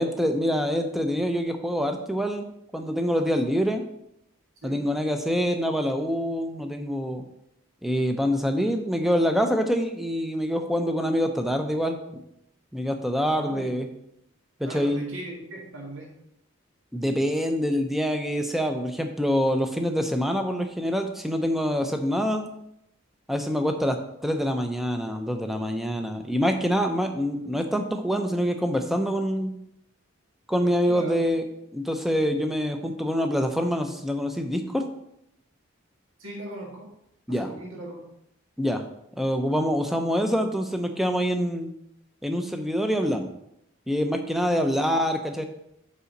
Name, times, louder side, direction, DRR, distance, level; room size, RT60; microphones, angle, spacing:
voice 1, 0.0-2.5 2.7-3.8 4.6-7.2 7.8-12.0 12.7-13.9 14.6-15.0 16.9-22.5 23.3-29.5 30.5-31.4 31.7-34.9 37.3-37.5 38.6-38.8 39.2-41.7 42.2-43.3 43.9-45.4, equal, ahead, 5 dB, 0.6 m, -25 dB
voice 2, 13.3-13.7 14.7-16.1 30.9-31.2 36.2-36.9 37.3-38.0 44.5-45.0, right 1 dB, 70° right, -2 dB, 1.8 m, -39 dB
5.5 x 4.9 x 6.5 m, 0.79 s
head